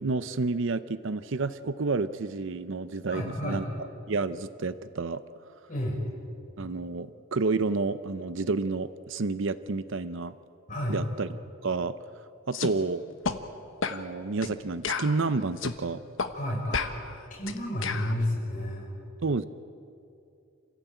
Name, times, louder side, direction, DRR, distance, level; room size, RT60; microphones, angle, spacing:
voice 1, 0.0-3.6 4.1-5.2 6.6-10.4 10.9-11.3 11.6-12.0 12.5-13.0 13.9-16.0 19.2-19.4, right 3 dB, 60° right, 14 dB, 0.6 m, -30 dB
voice 2, 3.1-3.6 5.7-6.0 10.7-11.0 16.3-16.9 17.3-18.9, left 1 dB, 40° left, -3 dB, 6.6 m, -31 dB
sound 1, 12.5-12.7 13.2-13.4 13.8-14.0 14.4-14.6 14.8-15.8 16.2-16.3 16.7-18.1, left 4 dB, 60° left, 1.2 m, -31 dB
27.5 x 16.0 x 9.1 m, 2.6 s
head